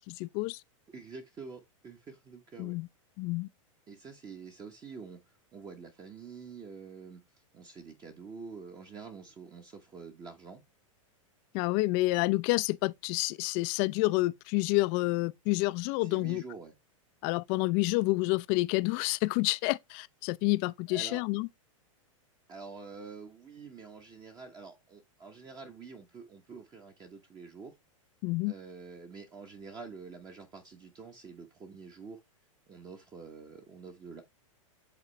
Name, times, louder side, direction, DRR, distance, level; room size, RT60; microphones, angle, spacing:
voice 1, 0.1-0.6 2.6-2.9 3.2-3.5 11.5-16.4 17.2-21.5 28.2-28.5, left 22 dB, 45° left, 0.4 m, -29 dB
voice 2, 0.9-2.7 3.9-5.2 5.5-7.2 7.5-10.6 16.0-16.7 20.9-21.2 22.5-27.7 28.5-32.2 32.7-34.2, right 5 dB, 25° right, 1.1 m, -47 dB
8.4 x 3.7 x 3.2 m
hypercardioid pair, 120°, 17 cm